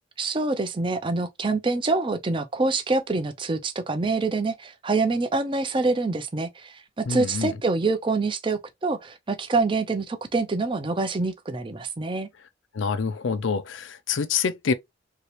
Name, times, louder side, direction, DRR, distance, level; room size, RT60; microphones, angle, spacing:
voice 1, 0.2-12.3, right 3 dB, 25° right, 0.5 m, -26 dB
voice 2, 7.1-7.5 12.7-14.7, left 5 dB, 75° left, 0.5 m, -26 dB
2.9 x 2.8 x 2.9 m
head